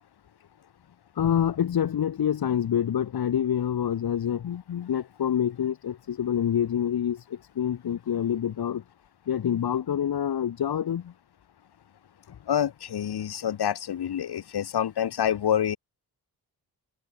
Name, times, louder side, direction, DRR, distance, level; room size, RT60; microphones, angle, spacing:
voice 1, 1.1-4.5 4.9-8.8 9.3-11.1 12.3-12.4, left 9 dB, 70° left, 2.3 m, -27 dB
voice 2, 4.4-4.9 12.5-15.8, left 9 dB, 85° left, 6.1 m, -27 dB
wide cardioid pair, 140°, 38 cm